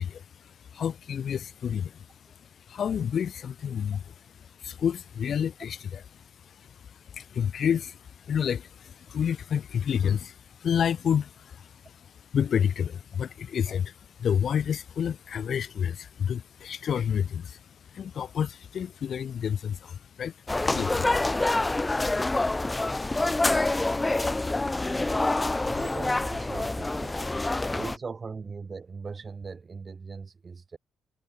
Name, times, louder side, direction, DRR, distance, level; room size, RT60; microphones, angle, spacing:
voice 1, 0.0-2.1 2.4-21.2 21.4-25.7 27.6-27.8, left 8 dB, 55° left, 1.0 m, -31 dB
sound 1, 20.5-28.0, left 2 dB, 15° left, 0.5 m, -26 dB
voice 2, 25.7-27.2 27.7-30.8, right 4 dB, 35° right, 2.4 m, -39 dB
cardioid pair, 90°, 0 cm